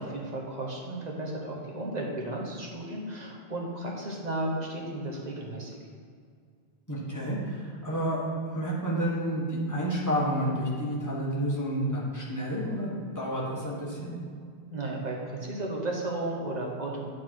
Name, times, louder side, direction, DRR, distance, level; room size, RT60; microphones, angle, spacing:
voice 1, 0.0-5.7 14.7-17.1, right 2 dB, 40° right, -2 dB, 1.2 m, -34 dB
voice 2, 6.9-14.2, right 1 dB, 15° left, -6 dB, 1.6 m, -30 dB
9.1 x 4.3 x 4.7 m, 2.1 s
omnidirectional pair, 1.1 m